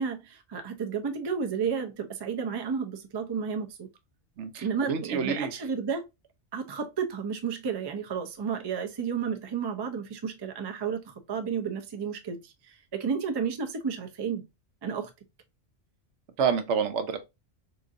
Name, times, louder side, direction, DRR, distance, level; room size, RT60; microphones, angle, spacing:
voice 1, 0.0-3.9 4.6-6.0 6.5-14.4 14.8-15.1, right 6 dB, 45° right, 0.3 m, -32 dB
voice 2, 4.4-5.5 16.4-17.2, right 6 dB, 80° right, 1.0 m, -28 dB
3.8 x 2.5 x 2.5 m
omnidirectional pair, 1.2 m